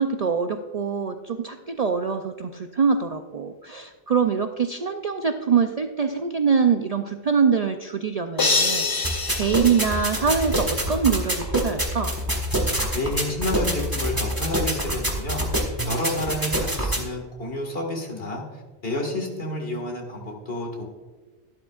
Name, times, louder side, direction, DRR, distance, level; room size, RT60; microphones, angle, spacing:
voice 1, 0.0-12.1, right 6 dB, 50° right, 6 dB, 0.4 m, -24 dB
sound 1, 8.4-10.7, left 3 dB, 25° left, 0.5 m, -26 dB
sound 2, 9.0-17.0, equal, 20° right, 1.6 m, -26 dB
voice 2, 12.9-15.4 15.9-18.4 18.8-20.8, left 1 dB, 60° left, 2 dB, 2.1 m, -29 dB
12.0 x 11.5 x 2.4 m, 1.4 s
omnidirectional pair, 1.1 m